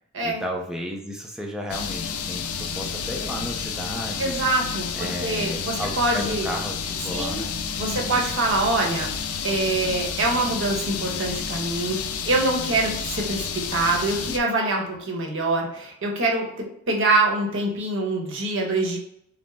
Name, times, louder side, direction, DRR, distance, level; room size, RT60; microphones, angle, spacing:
voice 1, 0.2-4.4 4.9-7.6 7.9-8.3, equal, 5° right, 0 dB, 0.5 m, -33 dB
sound 1, 1.7-14.4, left 6 dB, 85° left, 0.4 m, -30 dB
voice 2, 4.2-6.5 7.1-7.4 7.8-9.1 9.4-16.5 16.9-19.0, right 2 dB, 60° right, -1 dB, 1.0 m, -24 dB
5.1 x 2.0 x 3.4 m, 0.76 s
head